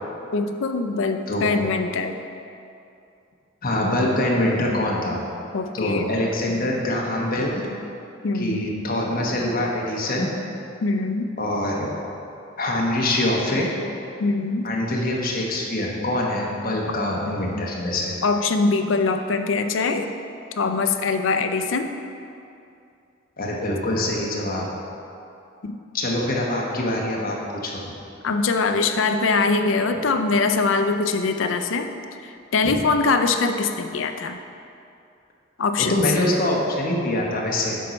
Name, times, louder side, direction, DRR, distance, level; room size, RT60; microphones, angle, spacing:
voice 1, 0.3-2.2 5.5-6.1 8.2-8.7 10.8-11.3 14.2-14.7 18.2-20.1 20.6-21.9 25.6-25.8 28.2-31.9 32.2-34.4 35.6-35.9, left 4 dB, 70° left, 7 dB, 0.5 m, -23 dB
voice 2, 1.3-1.6 3.6-5.2 5.7-7.7 8.3-10.3 11.4-12.0 12.6-13.7 14.6-18.1 23.4-24.7 25.9-27.4 27.6-27.8 32.6-32.8 35.8-37.8, left 1 dB, 45° left, -2 dB, 1.1 m, -24 dB
7.5 x 4.3 x 5.2 m, 2.6 s
head